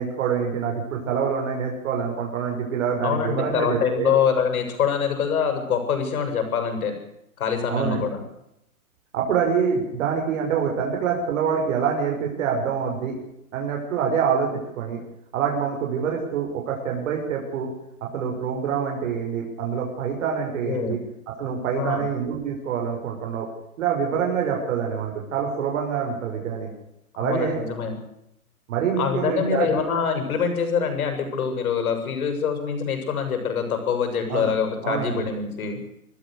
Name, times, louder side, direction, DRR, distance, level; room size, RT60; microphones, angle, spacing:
voice 1, 0.0-4.1 7.7-8.0 9.1-13.2 13.5-15.0 15.3-17.7 18.1-21.0 21.4-23.5 23.8-26.7 27.2-27.6 28.7-29.8 34.3-34.5 34.8-35.2, right 7 dB, 55° right, 1 dB, 6.4 m, -26 dB
voice 2, 3.0-6.9 7.4-8.2 20.7-21.0 21.8-22.0 27.2-28.0 29.0-35.8, left 6 dB, 70° left, 6 dB, 7.7 m, -25 dB
26.5 x 15.0 x 6.6 m, 0.81 s
hypercardioid pair, 135°, 45 cm